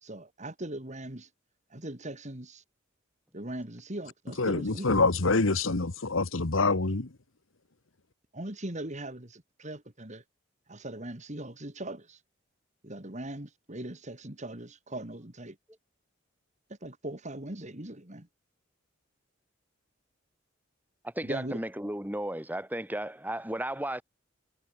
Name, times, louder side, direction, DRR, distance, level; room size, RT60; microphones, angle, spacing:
voice 1, 0.0-1.3 1.7-2.6 3.3-4.9 8.3-10.2 10.7-12.2 12.8-15.6 16.8-18.3 21.2-21.6, right 1 dB, 35° right, 2.7 m, -40 dB
voice 2, 4.4-7.1, left 3 dB, 90° left, 1.5 m, -26 dB
voice 3, 21.0-24.0, right 1 dB, 10° right, 8.0 m, -34 dB
head